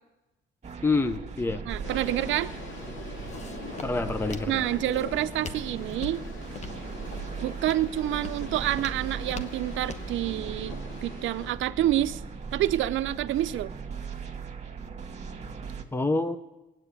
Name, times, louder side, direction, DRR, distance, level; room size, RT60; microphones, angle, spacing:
sound 1, 0.6-15.8, right 5 dB, 35° right, 1.7 m, -39 dB
voice 1, 0.8-1.6 3.8-4.6 15.9-16.4, left 3 dB, 10° left, 11 dB, 0.7 m, -27 dB
voice 2, 1.7-2.5 4.5-6.2 7.4-12.2 12.5-13.7, right 13 dB, 75° right, 11 dB, 0.6 m, -28 dB
sound 2, 1.8-11.5, left 4 dB, 70° left, 2.4 m, -43 dB
Walk footsteps, 2.1-10.2, left 4 dB, 35° left, 1.1 m, -44 dB
19.0 x 9.0 x 8.3 m, 1.0 s
cardioid pair, 90°, 20 cm